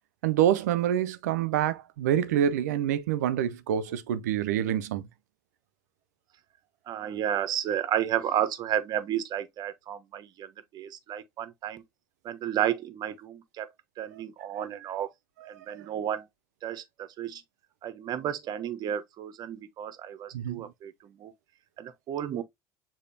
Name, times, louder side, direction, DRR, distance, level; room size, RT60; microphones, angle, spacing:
voice 1, 0.2-5.0 20.3-20.6, right 10 dB, 85° right, 0.5 m, -26 dB
voice 2, 6.9-11.8 12.2-13.7 14.0-15.1 15.4-16.3 16.6-17.4 17.8-21.3 21.8-22.4, right 10 dB, 55° right, 0.8 m, -32 dB
6.6 x 2.9 x 2.7 m
hypercardioid pair, 70°, 9 cm